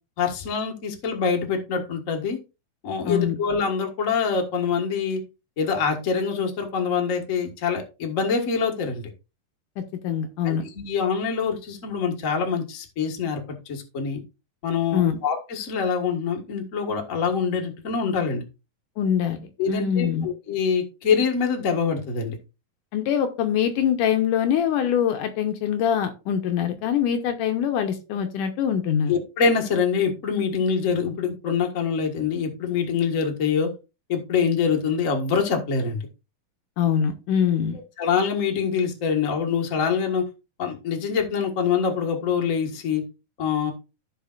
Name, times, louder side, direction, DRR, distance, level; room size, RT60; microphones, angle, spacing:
voice 1, 0.2-2.4 2.8-5.2 5.6-9.1 10.4-13.4 13.7-14.2 14.6-18.4 19.6-22.4 29.1-33.7 34.1-36.0 38.0-40.2 40.6-43.0 43.4-43.7, left 6 dB, 60° left, 2 dB, 0.8 m, -25 dB
voice 2, 3.1-3.4 10.0-10.6 14.9-15.2 19.0-19.4 19.7-20.3 22.9-29.2 36.8-37.8, left 8 dB, 75° left, 6 dB, 2.1 m, -23 dB
15.5 x 5.1 x 2.4 m, 0.29 s
omnidirectional pair, 4.3 m